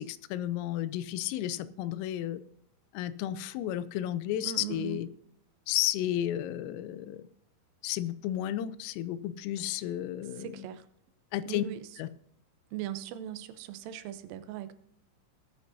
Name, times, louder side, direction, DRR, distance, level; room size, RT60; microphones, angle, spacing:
voice 1, 0.0-2.4 2.9-5.1 5.7-7.3 7.8-10.6 11.3-11.6 12.0-12.1, left 12 dB, 85° left, 3.3 m, -32 dB
voice 2, 4.4-5.0 9.6-9.8 10.4-10.9 11.5-11.9 12.7-14.8, right 11 dB, 80° right, 3.3 m, -39 dB
19.5 x 9.4 x 2.7 m
omnidirectional pair, 5.9 m